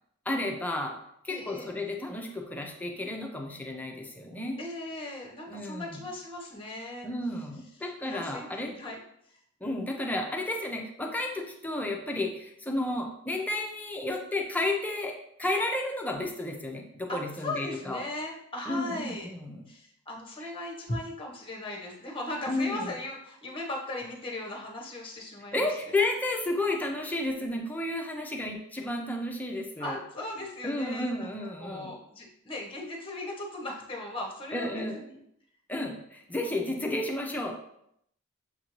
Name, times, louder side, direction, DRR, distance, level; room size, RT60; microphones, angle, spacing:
voice 1, 0.3-1.0 1.2-4.6 5.5-6.1 7.0-8.7 9.6-18.0 18.7-19.7 20.4-20.5 22.5-22.9 25.5-30.0 30.6-31.9 34.5-35.0 35.7-37.5, left 2 dB, 5° left, 2 dB, 0.4 m, -32 dB
voice 2, 1.3-1.7 4.6-7.1 8.0-9.0 9.3-9.4 17.1-19.3 19.7-25.7 29.8-35.2, left 2 dB, 25° left, -1 dB, 0.9 m, -38 dB
6.6 x 2.6 x 3.0 m, 0.73 s
head